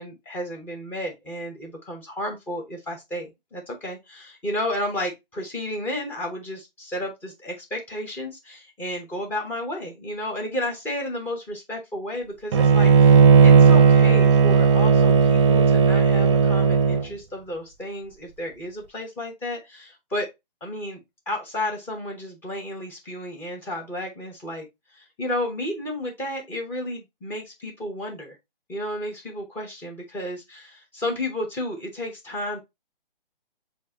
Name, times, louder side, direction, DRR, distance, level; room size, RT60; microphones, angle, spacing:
voice 1, 0.0-20.3 20.6-21.0 21.3-24.7 24.9-28.4 28.7-32.6, left 1 dB, 5° left, 0.7 m, -32 dB
Bowed string instrument, 12.5-17.1, right 6 dB, 30° right, 0.6 m, -15 dB
6.5 x 2.6 x 2.7 m
figure-of-eight pair, 145°, 29 cm